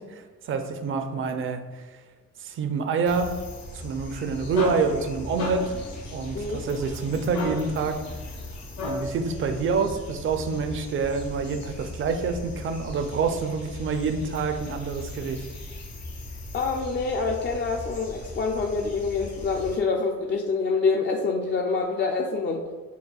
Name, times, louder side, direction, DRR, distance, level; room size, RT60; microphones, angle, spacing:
voice 1, 0.1-1.8 2.4-3.3 3.7-5.7 6.1-8.0 8.8-15.4, right 5 dB, 45° right, 7 dB, 0.5 m, -27 dB
sound 1, 3.0-19.8, left 1 dB, 60° left, 1.2 m, -39 dB
sound 2, 4.1-9.3, left 2 dB, 80° left, 0.8 m, -36 dB
voice 2, 6.3-6.7 16.5-22.6, left 4 dB, 40° left, 0 dB, 0.4 m, -26 dB
6.7 x 2.3 x 2.3 m, 1.3 s
cardioid pair, 90°, 30 cm